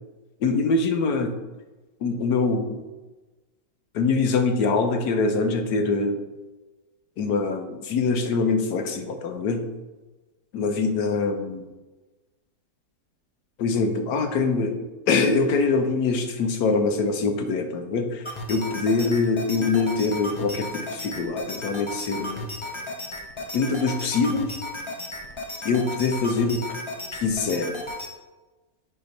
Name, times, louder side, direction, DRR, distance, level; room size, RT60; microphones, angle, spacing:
voice 1, 0.4-1.4 2.0-2.8 3.9-6.2 7.2-9.6 10.5-11.6 13.6-22.5 23.5-24.6 25.6-26.6 27.2-27.7, left 4 dB, 70° left, 5 dB, 1.3 m, -24 dB
sound 1, 18.2-28.1, left 1 dB, 40° left, 0.4 m, -35 dB
7.8 x 3.0 x 5.2 m, 1.2 s
omnidirectional pair, 1.9 m